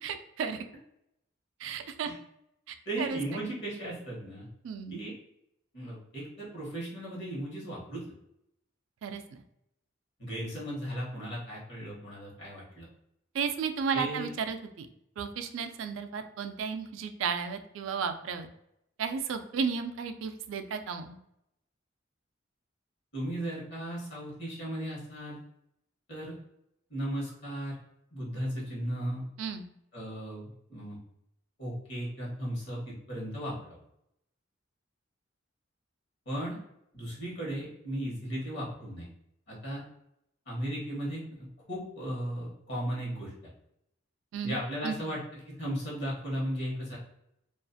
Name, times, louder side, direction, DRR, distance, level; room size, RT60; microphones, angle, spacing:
voice 1, 0.0-0.7 1.6-2.1 2.7-3.4 4.6-5.0 9.0-9.4 13.3-14.9 15.2-18.5 19.0-21.2 29.4-29.6 44.3-45.0, right 6 dB, 75° right, 8 dB, 0.3 m, -34 dB
voice 2, 2.9-4.5 4.9-5.1 5.7-8.0 10.2-12.9 13.9-14.3 23.1-25.4 26.1-26.3 26.9-27.7 28.1-29.2 29.9-31.0 31.6-33.8 36.3-36.6 36.9-39.1 39.5-39.8 40.5-41.2 41.7-43.5 44.4-45.2 45.5-47.0, right 1 dB, 60° left, -5 dB, 1.0 m, -36 dB
2.4 x 2.4 x 2.5 m, 0.79 s
head